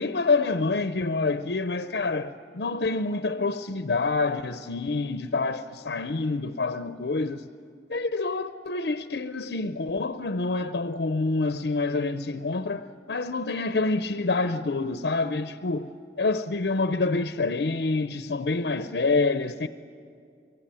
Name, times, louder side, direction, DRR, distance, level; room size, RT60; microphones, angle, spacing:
voice 1, 0.0-7.5 7.9-15.9 16.2-19.7, left 3 dB, 65° left, 0.6 m, -27 dB
24.0 x 24.0 x 9.0 m
head